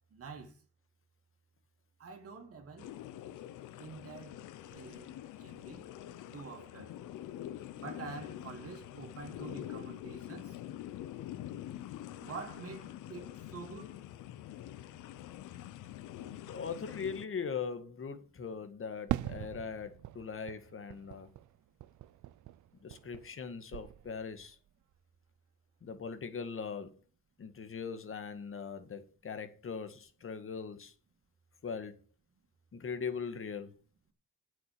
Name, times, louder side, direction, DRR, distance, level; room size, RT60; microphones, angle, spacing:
voice 1, 0.1-0.5 2.0-2.9 3.8-4.4 4.7-5.1 5.4-5.9 6.3-6.9 7.8-10.6 12.2-14.0, right 4 dB, 50° right, 2.7 m, -46 dB
sound 1, 2.8-17.3, left 12 dB, 85° left, 0.9 m, -45 dB
voice 2, 16.5-21.3 22.8-24.6 25.8-26.9 27.4-30.9 31.6-32.0 32.7-33.7, left 6 dB, 45° left, 2.1 m, -40 dB
Fireworks, 19.1-23.5 23.7-24.5, right 14 dB, 75° right, 0.6 m, -41 dB
8.8 x 7.9 x 6.9 m
cardioid pair, 90°, 30 cm